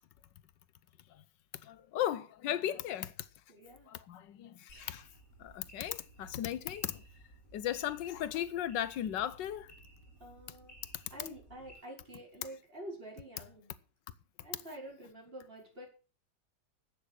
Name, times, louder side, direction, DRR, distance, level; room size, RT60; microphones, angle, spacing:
voice 1, 1.6-3.3 3.9-5.1 5.4-7.0 7.5-9.7, left 11 dB, 85° left, 1.5 m, -36 dB
voice 2, 3.5-3.9 7.5-7.9 10.2-10.8 11.1-13.8 14.4-15.9, right 1 dB, 30° right, 5.5 m, -48 dB
sound 1, 4.7-11.8, right 2 dB, 50° left, 8.0 m, -57 dB
12.0 x 8.5 x 6.5 m
omnidirectional pair, 1.9 m